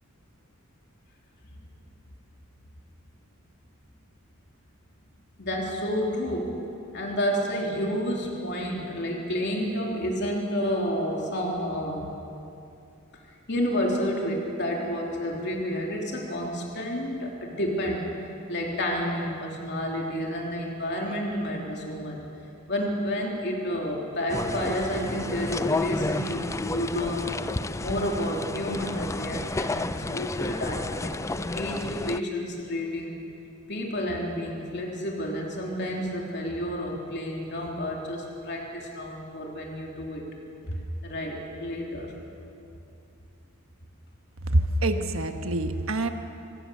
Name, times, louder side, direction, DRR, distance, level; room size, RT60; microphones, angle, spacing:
voice 1, 5.4-6.5 6.9-12.1 13.5-18.1 18.5-22.2 22.7-27.3 27.8-33.2 33.7-40.2 40.6-42.1, equal, 55° left, -1 dB, 3.1 m, -30 dB
sound 1, 24.3-32.2, left 2 dB, 15° left, 0.4 m, -31 dB
voice 2, 44.4-46.1, right 1 dB, 65° right, 7 dB, 1.3 m, -25 dB
25.5 x 17.0 x 6.8 m, 2.7 s
head